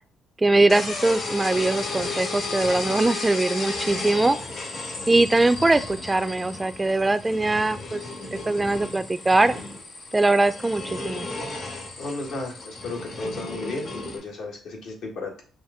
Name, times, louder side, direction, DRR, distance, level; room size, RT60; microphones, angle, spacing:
voice 1, 0.4-4.4 5.1-8.0 8.3-9.5 10.1-11.3, right 2 dB, 15° right, 12 dB, 0.3 m, -21 dB
sound 1, 0.7-14.2, left 3 dB, 60° left, 1.7 m, -34 dB
voice 2, 12.0-15.4, left 2 dB, 80° left, 0 dB, 1.5 m, -34 dB
5.7 x 2.6 x 3.5 m, 0.42 s
cardioid pair, 90°, 0 cm